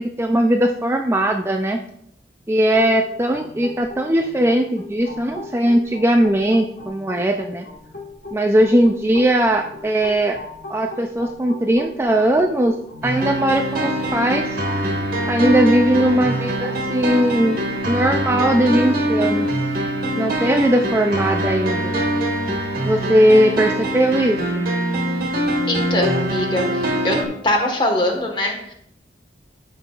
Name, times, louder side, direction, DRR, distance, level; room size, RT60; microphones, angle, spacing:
voice 1, 0.0-1.8 2.5-7.7 8.3-10.4 10.7-12.8 13.0-14.6 15.3-17.6 17.9-19.5 20.2-22.0 22.9-24.6, right 1 dB, 15° right, 4 dB, 0.4 m, -19 dB
sound 1, 2.7-18.5, left 2 dB, 60° left, 1.6 m, -39 dB
sound 2, 13.0-27.2, right 1 dB, 50° right, 1.5 m, -23 dB
voice 2, 25.7-26.6 27.0-27.2 27.4-28.7, left 1 dB, 25° left, 2 dB, 1.4 m, -21 dB
14.5 x 5.4 x 2.4 m, 0.71 s
head